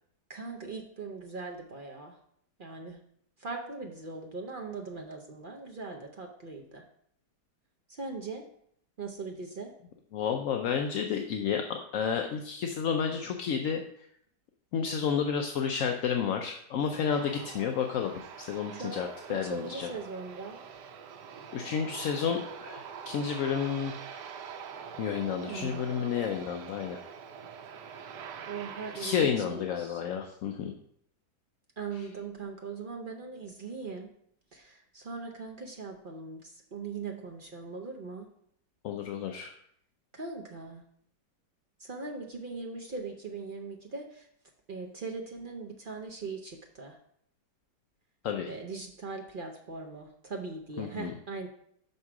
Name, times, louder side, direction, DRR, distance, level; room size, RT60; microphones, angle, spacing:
voice 1, 0.3-2.2 2.6-3.0 3.4-6.8 7.9-8.4 9.0-9.7 18.7-19.0 19.3-20.6 25.3-25.9 27.9-30.0 31.8-34.1 34.5-38.3 40.1-40.8 41.8-44.3 44.7-47.0 48.5-51.5, right 4 dB, 60° right, 2 dB, 0.5 m, -40 dB
voice 2, 10.1-13.8 14.7-19.9 21.5-23.9 25.0-27.0 28.9-30.7 38.8-39.5 48.2-48.5 50.8-51.1, left 7 dB, 65° left, 3 dB, 0.8 m, -31 dB
Aircraft, 17.1-29.2, right 7 dB, 85° right, 1.3 m, -44 dB
6.0 x 5.4 x 4.7 m, 0.68 s
omnidirectional pair, 1.8 m